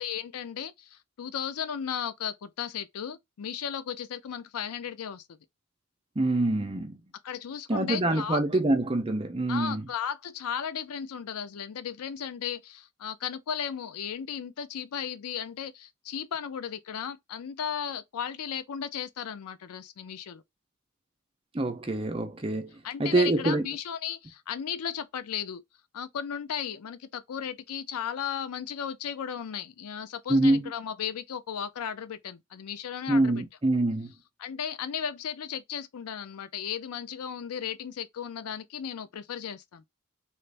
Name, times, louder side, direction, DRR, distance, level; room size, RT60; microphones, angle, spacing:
voice 1, 0.0-5.3 7.2-8.4 9.5-20.4 22.8-25.6 25.9-33.4 34.4-39.8, left 8 dB, 80° left, 0.4 m, -35 dB
voice 2, 6.2-6.9 7.7-9.8 21.5-22.7 23.0-23.6 30.3-30.6 33.1-34.1, right 2 dB, 25° right, 0.5 m, -25 dB
3.1 x 2.5 x 3.3 m
head